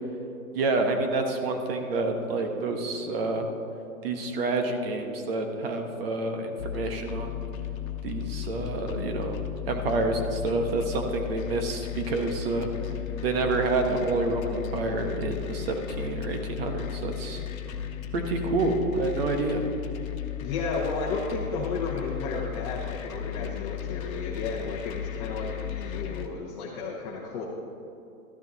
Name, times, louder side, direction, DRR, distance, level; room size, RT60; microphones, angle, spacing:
voice 1, 0.5-3.5 4.0-7.3 8.0-9.4 9.7-12.7 13.2-17.4 18.1-19.6, right 3 dB, 40° right, 5 dB, 1.3 m, -28 dB
sound 1, 6.6-26.3, left 11 dB, 65° left, 1.2 m, -35 dB
voice 2, 20.4-27.4, left 4 dB, 30° left, -3 dB, 1.1 m, -33 dB
13.0 x 10.5 x 4.2 m, 2.8 s
hypercardioid pair, 155°, 43 cm